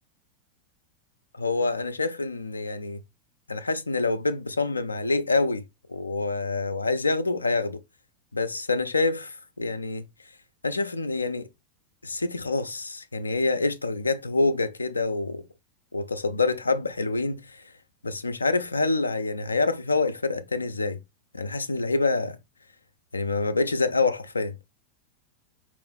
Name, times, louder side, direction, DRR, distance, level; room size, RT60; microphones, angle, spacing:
voice 1, 1.4-3.0 3.5-5.6 5.9-7.8 8.3-10.0 10.6-11.5 12.0-15.4 15.9-17.6 18.0-21.0 21.3-22.4 23.1-24.6, left 3 dB, 80° left, 0.4 m, -26 dB
4.6 x 2.5 x 3.4 m
figure-of-eight pair, 90°, 0 cm